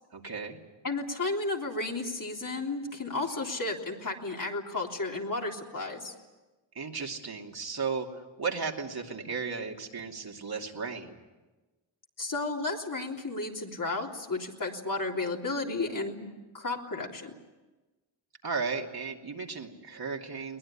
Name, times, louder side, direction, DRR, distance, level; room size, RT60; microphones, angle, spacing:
voice 1, 0.1-0.6 6.7-11.2 18.4-20.6, right 5 dB, 50° right, 1 dB, 2.9 m, -35 dB
voice 2, 0.8-6.1 12.2-16.3 16.5-17.3, left 3 dB, 40° left, 0 dB, 3.5 m, -33 dB
22.0 x 19.5 x 10.0 m, 1.2 s
cardioid pair, 75°, 47 cm